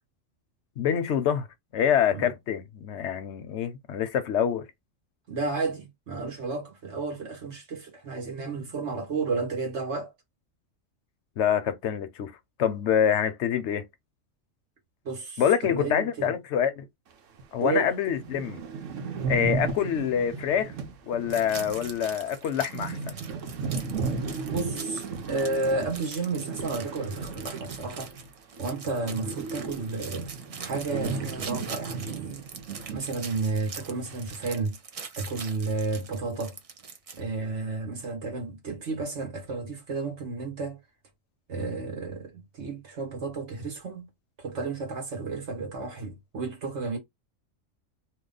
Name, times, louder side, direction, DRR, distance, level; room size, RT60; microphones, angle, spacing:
voice 1, 0.8-1.5 1.7-4.7 11.4-12.3 12.6-13.8 15.4-16.8 17.5-18.6 19.3-20.7 21.1-23.2, left 8 dB, 65° left, 0.9 m, -26 dB
voice 2, 5.3-10.1 15.0-16.3 17.6-17.9 24.5-28.1 28.6-30.3 30.6-32.4 32.9-34.8 35.2-36.6 37.1-40.8 41.5-44.1 44.4-47.0, right 3 dB, 65° right, 1.5 m, -32 dB
sound 1, 17.4-17.5 17.8-17.9 18.1-28.3 28.6-33.1 33.3-33.4 34.1-34.5, right 4 dB, 80° right, 1.1 m, -35 dB
sound 2, 21.3-37.2, right 5 dB, 45° right, 0.5 m, -43 dB
2.9 x 2.2 x 3.8 m
omnidirectional pair, 1.3 m